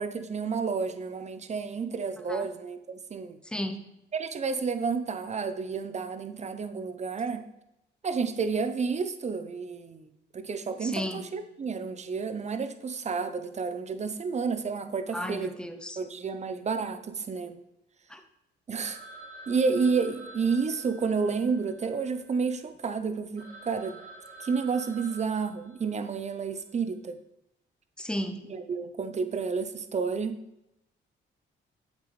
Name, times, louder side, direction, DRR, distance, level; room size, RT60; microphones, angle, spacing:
voice 1, 0.0-3.4 4.1-7.5 8.0-15.6 16.0-17.6 18.7-19.0 19.5-24.0 24.4-27.2 28.5-30.4, right 5 dB, 35° right, 9 dB, 0.7 m, -30 dB
voice 2, 3.5-3.8 10.8-11.3 15.1-16.0 18.1-18.2 28.0-28.4, left 1 dB, 5° left, 7 dB, 0.8 m, -34 dB
Telephone, 18.8-22.6 23.1-23.2 23.4-26.2, right 2 dB, 85° right, 2.5 m, -48 dB
7.5 x 7.4 x 3.3 m, 0.85 s
cardioid pair, 90°, 20 cm